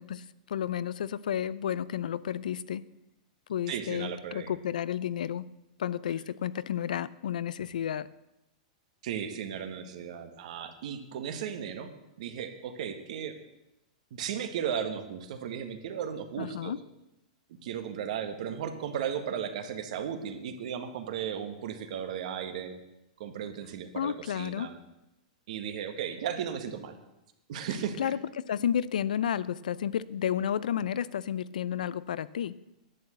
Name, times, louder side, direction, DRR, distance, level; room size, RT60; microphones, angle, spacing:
voice 1, 0.0-2.8 3.5-5.5 5.8-8.1 16.4-16.8 23.9-24.7 28.0-32.5, left 9 dB, 90° left, 18 dB, 0.6 m, -32 dB
voice 2, 3.7-4.5 9.0-11.9 12.2-13.3 14.1-16.7 17.6-22.8 23.2-24.8 25.5-26.9 27.5-28.0, right 8 dB, 60° right, 8 dB, 1.5 m, -35 dB
11.0 x 8.6 x 7.9 m, 0.92 s
supercardioid pair, 150°, 4 cm